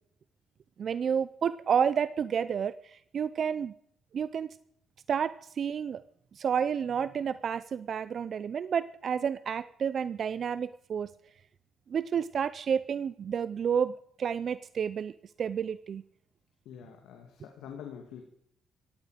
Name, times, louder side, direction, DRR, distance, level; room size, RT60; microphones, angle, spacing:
voice 1, 0.8-3.7 4.1-4.5 5.1-6.0 6.3-11.1 11.9-13.9 14.2-16.0, right 7 dB, 55° right, 15 dB, 0.5 m, -30 dB
voice 2, 16.6-18.2, left 8 dB, 90° left, 2 dB, 2.4 m, -45 dB
16.5 x 15.0 x 5.1 m, 0.68 s
cardioid pair, 100°, 0 cm